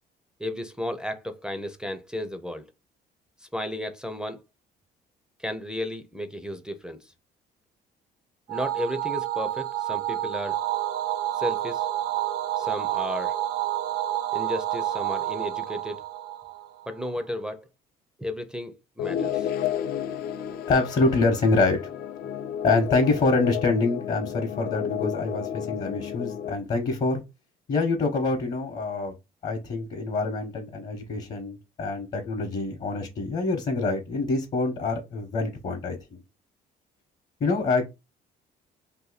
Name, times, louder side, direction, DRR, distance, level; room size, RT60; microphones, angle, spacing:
voice 1, 0.4-2.7 3.4-4.4 5.4-7.1 8.5-10.6 11.4-11.8 12.6-13.4 14.3-16.0 16.9-17.7 18.2-19.5, left 1 dB, 5° right, 0.4 m, -33 dB
sound 1, 8.5-17.1, right 13 dB, 85° right, 0.7 m, -29 dB
sound 2, 19.0-26.5, left 9 dB, 65° left, 0.5 m, -32 dB
voice 2, 20.7-21.8 22.6-27.2 27.7-29.1 29.4-36.2 37.4-37.8, left 3 dB, 50° left, 0.9 m, -25 dB
2.7 x 2.6 x 3.9 m
cardioid pair, 110°, 17 cm